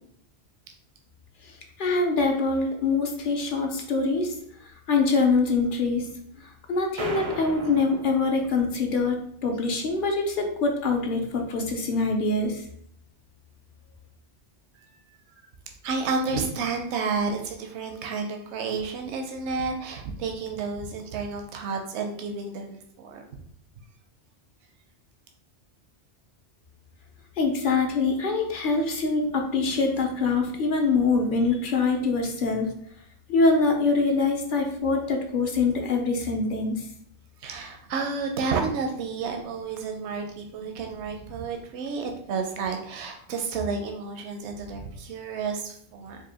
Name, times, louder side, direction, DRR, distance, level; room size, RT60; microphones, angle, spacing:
voice 1, 1.8-4.3 4.6-6.1 6.4-9.2 9.4-12.6 27.4-32.7 33.3-36.9, left 3 dB, 55° left, 3 dB, 0.7 m, -24 dB
sound 1, 7.0-9.0, right 3 dB, 40° right, 0.4 m, -37 dB
voice 2, 15.8-23.2 37.4-46.2, right 4 dB, 80° right, 4 dB, 0.9 m, -31 dB
4.7 x 2.5 x 2.8 m, 0.65 s
omnidirectional pair, 1.1 m